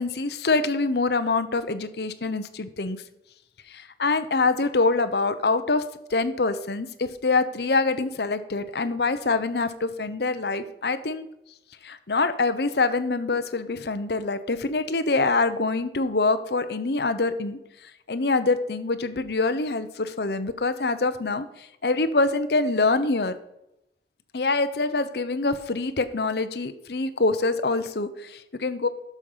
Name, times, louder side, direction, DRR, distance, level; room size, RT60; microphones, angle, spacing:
voice 1, 0.0-3.0 3.7-5.8 6.1-11.3 11.8-17.6 18.1-21.5 21.8-23.4 24.3-28.9, left 3 dB, 70° left, 10 dB, 0.8 m, -25 dB
11.5 x 6.5 x 5.6 m, 0.85 s
head